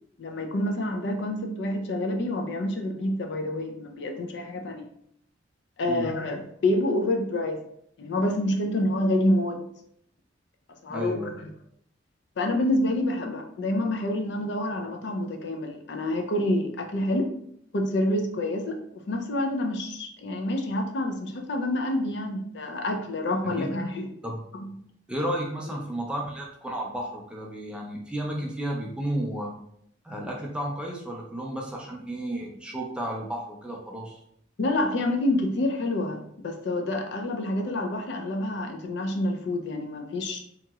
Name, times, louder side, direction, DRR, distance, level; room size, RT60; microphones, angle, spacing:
voice 1, 0.2-4.9 5.8-7.6 8.0-9.6 10.8-11.5 12.4-17.3 17.7-24.1 24.5-24.7 34.6-40.4, left 1 dB, 60° left, 4 dB, 0.4 m, -27 dB
voice 2, 10.9-11.4 23.4-23.7 24.2-24.4 25.1-29.5 30.0-34.2, right 1 dB, 5° right, -1 dB, 0.4 m, -32 dB
2.9 x 2.8 x 2.3 m, 0.71 s
head